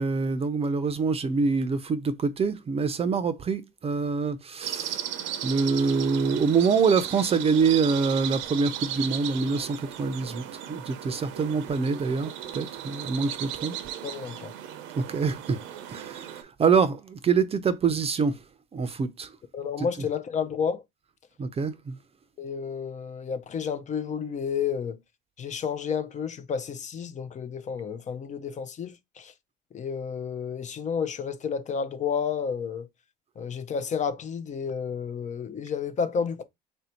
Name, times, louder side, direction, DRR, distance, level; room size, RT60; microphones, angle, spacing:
voice 1, 0.0-5.0 5.4-13.7 15.0-15.6 15.9-18.4 18.7-19.3 21.4-22.0, right 5 dB, 30° right, 0.6 m, -25 dB
sound 1, 4.6-16.4, right 10 dB, 65° right, 0.7 m, -36 dB
voice 2, 14.0-14.5 19.5-20.8 22.4-25.0 25.4-29.3 29.7-32.9 33.4-36.4, left 6 dB, 35° left, 0.6 m, -31 dB
3.3 x 2.7 x 4.3 m
supercardioid pair, 100°, 21 cm